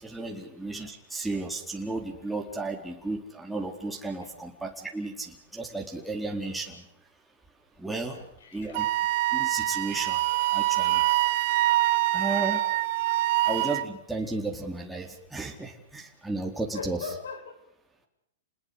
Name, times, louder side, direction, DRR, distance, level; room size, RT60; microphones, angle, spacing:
voice 1, 0.0-6.8 7.8-8.2 8.5-8.9 9.3-10.2 10.5-11.0 12.1-12.6 13.4-17.0, right 3 dB, 5° right, -1 dB, 4.2 m, -33 dB
voice 2, 8.0-8.8 16.7-17.5, left 6 dB, 75° left, 9 dB, 7.0 m, -41 dB
Wind instrument woodwind instrument, 8.7-13.9, right 16 dB, 50° right, 1.6 m, -25 dB
30.0 x 20.5 x 6.8 m, 0.81 s
hypercardioid pair, 130°, 0 cm